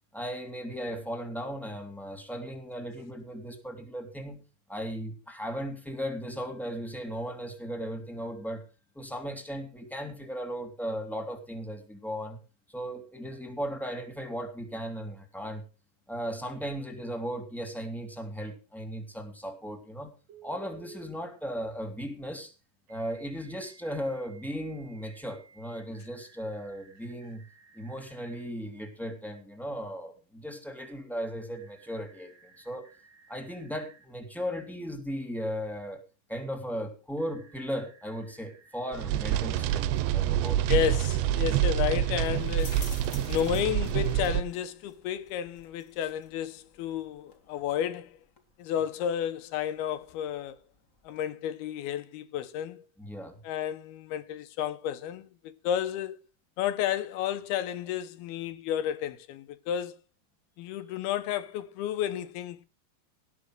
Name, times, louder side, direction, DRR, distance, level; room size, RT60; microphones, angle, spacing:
voice 1, 0.1-4.4 4.7-8.6 8.9-12.4 12.7-15.6 16.1-20.1 20.4-22.5 22.9-27.4 27.7-32.9 33.3-36.0 36.3-41.0 53.0-53.4, equal, ahead, 1.8 m, -37 dB
Telephone, 20.3-21.0 22.9-28.4 31.5-34.1 37.2-39.7, right 7 dB, 55° right, 5.1 m, -57 dB
sound 1, 38.9-44.4, right 11 dB, 85° right, 3.0 m, -27 dB
sound 2, 40.6-51.2, left 4 dB, 50° left, 0.9 m, -53 dB
voice 2, 40.7-42.9 43.3-48.1 48.6-50.6 51.0-52.8 53.4-56.2 56.6-60.0 60.6-62.7, left 10 dB, 75° left, 2.6 m, -32 dB
18.0 x 6.2 x 6.3 m
omnidirectional pair, 4.9 m